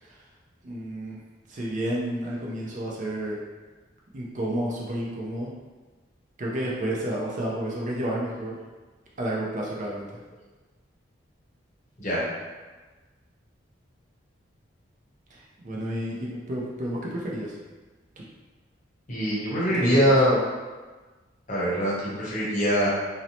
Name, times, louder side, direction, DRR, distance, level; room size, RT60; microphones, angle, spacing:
voice 1, 0.6-1.2 1.5-3.4 4.1-5.5 6.4-8.6 9.2-10.1 15.3-17.6 18.2-18.3 19.7-20.1, right 1 dB, 40° right, -4 dB, 0.4 m, -31 dB
voice 2, 19.1-20.3 21.5-22.9, equal, 40° left, -6 dB, 0.7 m, -23 dB
2.6 x 2.0 x 2.8 m, 1.3 s
head